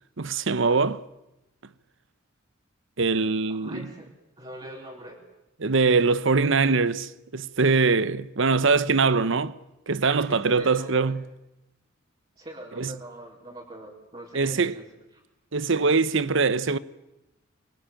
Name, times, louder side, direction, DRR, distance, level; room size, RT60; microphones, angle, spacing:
voice 1, 0.2-1.0 3.0-3.9 5.6-9.5 9.9-11.2 12.8-12.9 14.3-14.8 15.5-16.8, right 4 dB, 65° right, 1.0 m, -22 dB
voice 2, 3.5-5.2 10.0-11.1 12.4-15.2, right 1 dB, 30° right, 4.3 m, -42 dB
26.0 x 23.5 x 9.0 m
head